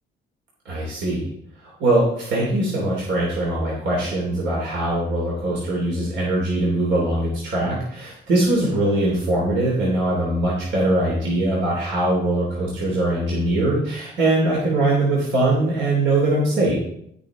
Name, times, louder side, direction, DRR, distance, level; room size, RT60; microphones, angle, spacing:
voice 1, 0.6-1.3 1.6-16.7, right 2 dB, 70° right, -4 dB, 3.0 m, -22 dB
15.5 x 5.4 x 3.7 m, 0.71 s
cardioid pair, 90°, 20 cm